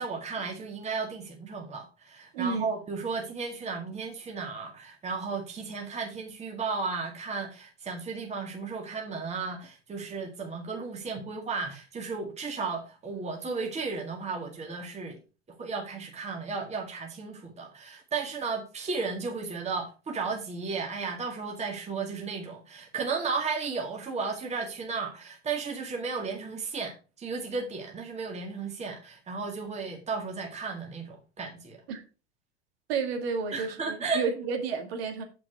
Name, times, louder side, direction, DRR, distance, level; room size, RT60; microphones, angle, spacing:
voice 1, 0.0-15.2 15.6-31.8 33.5-34.3, right 4 dB, 20° right, 2.0 m, -34 dB
voice 2, 2.3-2.7 31.9-32.0 32.9-35.2, right 5 dB, 65° right, 2.0 m, -31 dB
7.3 x 6.2 x 4.6 m
hypercardioid pair, 90°, 33 cm